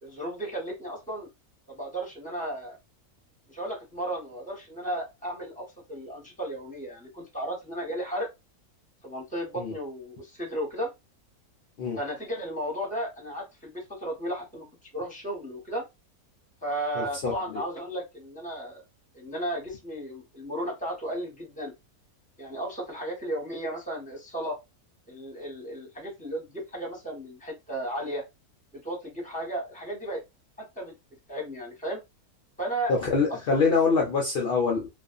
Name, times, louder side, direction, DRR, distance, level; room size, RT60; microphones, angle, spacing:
voice 1, 0.0-1.3 1.7-2.8 3.5-8.3 9.0-10.9 12.0-14.7 14.9-15.8 16.6-18.8 19.1-21.7 22.4-24.6 25.1-28.2 28.7-30.2 30.6-30.9 31.3-32.0 32.6-32.9 33.3-33.7, right 1 dB, 5° left, 0.9 m, -34 dB
voice 2, 17.0-17.3 32.9-34.9, left 4 dB, 65° left, 0.5 m, -24 dB
2.5 x 2.4 x 2.3 m
omnidirectional pair, 1.6 m